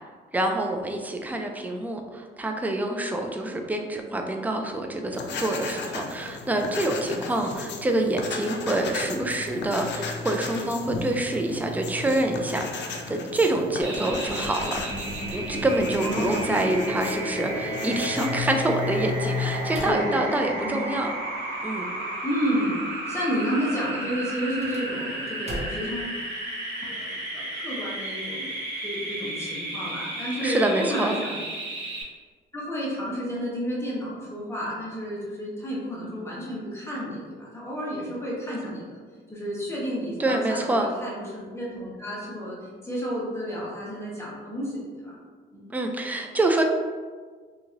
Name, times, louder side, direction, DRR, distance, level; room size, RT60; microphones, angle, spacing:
voice 1, 0.3-14.8 15.3-21.1 21.6-21.9 30.4-31.1 40.2-40.9 45.7-46.6, right 1 dB, 10° right, 3 dB, 0.3 m, -26 dB
sound 1, 5.1-19.8, left 4 dB, 65° left, 0.4 m, -35 dB
sound 2, 13.8-32.0, right 1 dB, 70° right, 1.1 m, -33 dB
voice 2, 16.0-16.6 19.8-20.9 22.2-26.1 26.9-28.5 28.8-31.3 32.5-39.0 39.3-45.1 45.5-45.7, equal, 15° left, -7 dB, 1.1 m, -31 dB
sound 3, 19.7-21.1 24.4-26.0, right 1 dB, 35° right, 0.7 m, -39 dB
2.9 x 2.7 x 2.5 m, 1.5 s
cardioid pair, 90°, 20 cm